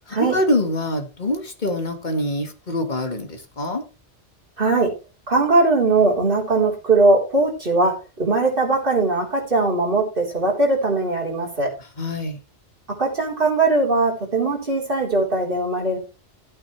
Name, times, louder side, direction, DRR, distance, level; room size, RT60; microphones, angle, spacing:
voice 1, 0.1-3.8 12.0-12.4, left 1 dB, 40° left, 6 dB, 1.8 m, -24 dB
voice 2, 4.6-4.9 5.3-11.7 13.0-16.0, right 3 dB, 50° right, -3 dB, 4.2 m, -20 dB
14.0 x 8.8 x 3.2 m, 0.30 s
omnidirectional pair, 1.2 m